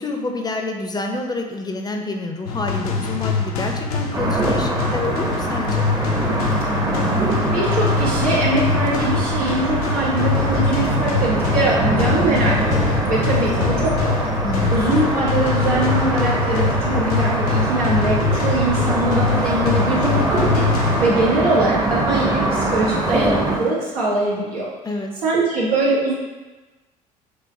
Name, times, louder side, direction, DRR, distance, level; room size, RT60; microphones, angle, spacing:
voice 1, 0.0-5.9 14.4-14.8 24.8-25.1, left 2 dB, 20° left, 3 dB, 0.5 m, -28 dB
sound 1, 2.5-21.4, left 5 dB, 85° left, 0.5 m, -23 dB
sound 2, 4.1-23.6, right 2 dB, 20° right, 0.8 m, -23 dB
Thunder, 5.9-23.7, right 6 dB, 50° right, 0.5 m, -38 dB
voice 2, 7.5-14.3 14.7-20.6 21.0-24.7 25.2-26.1, right 2 dB, 85° right, -5 dB, 1.1 m, -22 dB
4.7 x 2.9 x 2.7 m, 1.2 s
hypercardioid pair, 65°, 19 cm